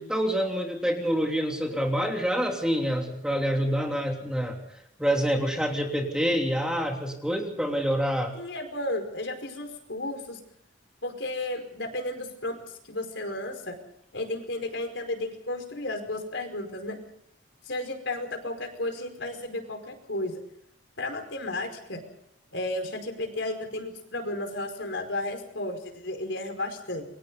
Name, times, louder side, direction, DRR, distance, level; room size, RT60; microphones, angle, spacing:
voice 1, 0.0-4.6 5.0-8.4, equal, 5° right, 2 dB, 3.1 m, -27 dB
voice 2, 8.4-10.4 11.0-12.6 12.8-13.8 14.1-17.0 17.7-20.4 21.0-22.0 22.5-27.1, left 1 dB, 65° left, 6 dB, 5.1 m, -33 dB
29.0 x 24.0 x 4.1 m, 0.72 s
head